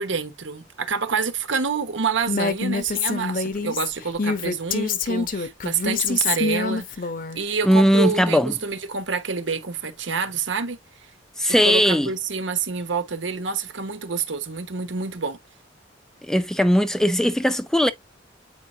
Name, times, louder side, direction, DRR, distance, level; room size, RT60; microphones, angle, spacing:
voice 1, 0.0-10.8 11.6-15.4, right 5 dB, 90° right, 1.1 m, -27 dB
Female speech woman speaking, 2.3-7.4, left 4 dB, 50° left, 0.8 m, -26 dB
voice 2, 7.6-8.5 11.4-12.1 16.2-17.9, equal, 5° left, 0.4 m, -19 dB
8.2 x 4.6 x 2.8 m
head